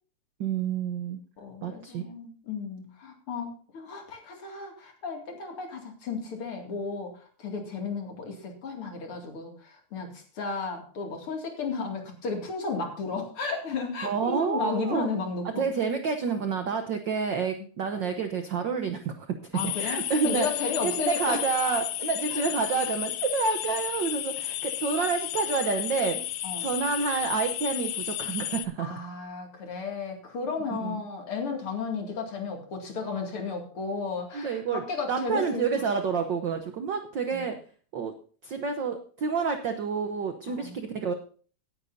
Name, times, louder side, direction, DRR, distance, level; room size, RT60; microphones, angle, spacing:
voice 1, 0.4-1.2 1.6-2.0 14.0-15.1 15.6-20.5 20.8-26.2 26.6-28.9 30.8-31.0 34.3-37.6 37.9-38.1 38.4-41.1, right 5 dB, 75° right, 7 dB, 1.0 m, -29 dB
voice 2, 1.4-15.7 19.5-21.4 22.3-22.4 26.4-26.7 28.8-35.6 37.3-37.5 40.5-40.7, left 4 dB, 50° left, 3 dB, 3.1 m, -34 dB
sound 1, 19.6-28.7, left 14 dB, 85° left, 2.1 m, -32 dB
18.0 x 9.7 x 2.7 m, 0.41 s
omnidirectional pair, 3.4 m